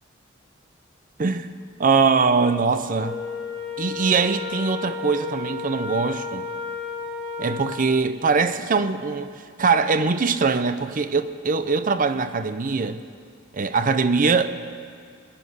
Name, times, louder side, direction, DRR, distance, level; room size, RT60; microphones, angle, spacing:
voice 1, 1.8-3.2 3.8-6.5 7.4-9.3 9.6-13.0 13.5-14.5, right 4 dB, 45° right, 12 dB, 0.6 m, -22 dB
Wind instrument woodwind instrument, 3.0-7.8, left 4 dB, 60° left, 3.9 m, -32 dB
19.0 x 10.0 x 6.4 m, 2.1 s
head